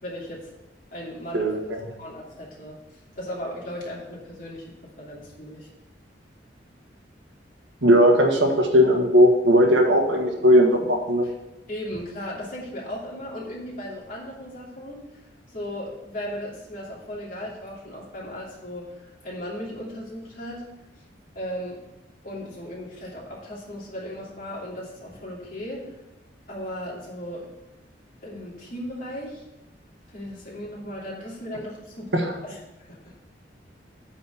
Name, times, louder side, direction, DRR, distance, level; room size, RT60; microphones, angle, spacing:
voice 1, 0.0-0.5 0.9-1.5 2.0-5.7 11.2-11.3 11.7-15.0 15.5-20.7 21.3-21.8 22.2-25.9 26.5-27.5 28.2-29.4 30.1-33.1, equal, 50° left, -4 dB, 2.9 m, -36 dB
voice 2, 1.3-1.8 7.8-11.2 32.1-32.3, equal, 80° right, 2 dB, 1.6 m, -18 dB
8.7 x 4.3 x 7.1 m, 0.96 s
head